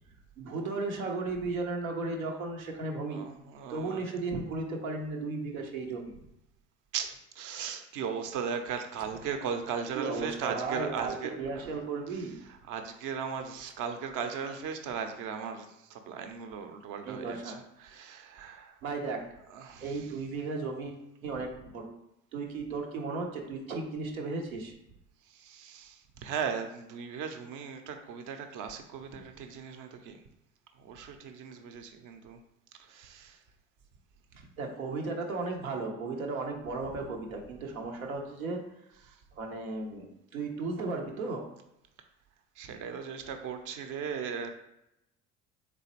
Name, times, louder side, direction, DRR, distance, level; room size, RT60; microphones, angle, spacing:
voice 1, 0.4-3.2 3.7-6.1 9.9-12.4 17.1-17.6 18.8-19.3 19.8-21.9 22.3-24.7 34.6-38.6 39.4-41.5, right 3 dB, 85° right, 2 dB, 0.6 m, -35 dB
voice 2, 3.1-4.0 4.3-4.4 6.9-11.6 12.1-18.8 19.5-20.1 25.3-30.2 30.8-32.4 32.8-33.4 42.6-44.5, right 6 dB, 50° right, 6 dB, 0.6 m, -37 dB
3.7 x 3.0 x 2.9 m, 0.86 s
figure-of-eight pair, 55°, 41 cm